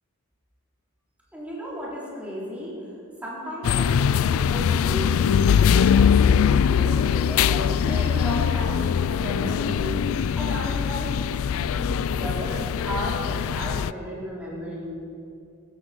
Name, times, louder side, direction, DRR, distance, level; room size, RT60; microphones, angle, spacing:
voice 1, 1.3-2.9 3.2-10.0 10.3-11.3 11.6-14.9, equal, 5° right, -7 dB, 4.2 m, -34 dB
sound 1, 3.6-13.9, left 7 dB, 70° left, 0.3 m, -22 dB
14.5 x 14.5 x 5.3 m, 2.5 s
head